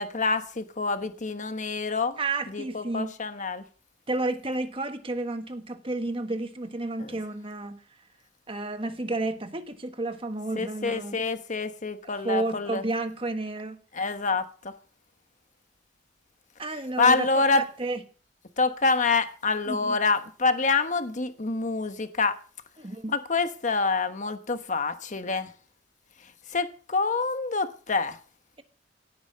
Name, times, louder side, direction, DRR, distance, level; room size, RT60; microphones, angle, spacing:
voice 1, 0.0-2.2 2.5-3.6 7.0-7.1 10.5-12.8 13.9-14.4 17.0-17.6 18.6-22.3 23.1-25.5 26.5-28.2, left 4 dB, 40° left, 1.2 m, -26 dB
voice 2, 2.2-3.1 4.1-7.8 8.5-11.2 12.2-13.8 16.6-18.0 19.7-20.0 22.8-23.1, right 2 dB, 30° right, 1.4 m, -31 dB
17.0 x 8.8 x 5.6 m
head